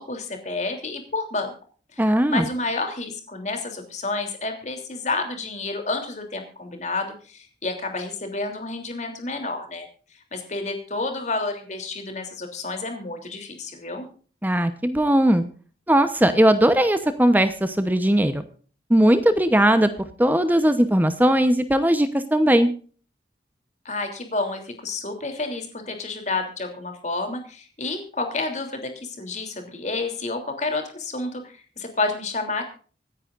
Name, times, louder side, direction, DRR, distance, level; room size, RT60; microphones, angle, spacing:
voice 1, 0.0-1.5 1.9-2.0 2.3-9.9 10.3-14.1 23.8-32.7, left 3 dB, 40° left, 5 dB, 3.1 m, -30 dB
voice 2, 2.0-2.5 14.4-15.4 15.9-18.4 18.9-19.9 20.2-22.7, right 1 dB, 10° right, 10 dB, 0.9 m, -19 dB
26.0 x 9.9 x 2.5 m, 0.41 s
head